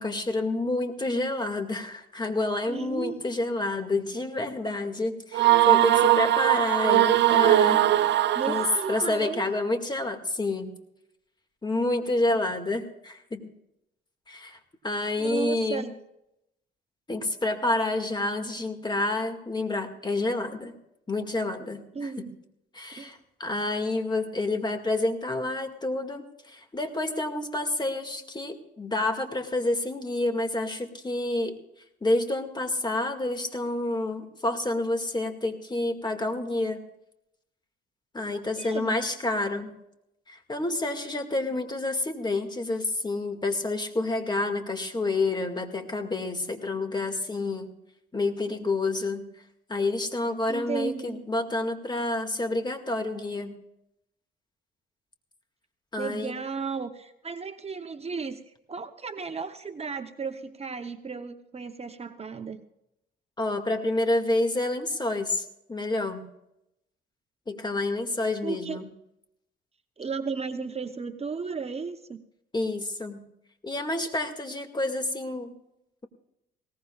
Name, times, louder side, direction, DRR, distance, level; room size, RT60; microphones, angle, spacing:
voice 1, 0.0-7.8 8.5-10.7 11.6-13.4 14.3-14.6 14.8-15.9 17.1-20.8 21.1-22.1 22.7-31.6 32.0-36.8 38.1-39.7 40.3-47.7 48.1-49.3 49.7-53.5 55.9-56.3 63.4-66.2 67.5-68.9 72.5-73.2 73.6-75.5, left 2 dB, 20° left, 6 dB, 2.1 m, -29 dB
voice 2, 2.7-3.2 8.3-9.4 15.2-15.9 21.9-22.4 23.0-23.2 38.6-39.0 50.5-51.2 56.0-62.6 68.4-68.8 70.0-72.2, right 5 dB, 30° right, 8 dB, 0.9 m, -34 dB
sound 1, 5.3-9.2, right 14 dB, 65° right, 0.6 m, -21 dB
20.5 x 18.0 x 2.4 m, 0.83 s
cardioid pair, 90°, 20 cm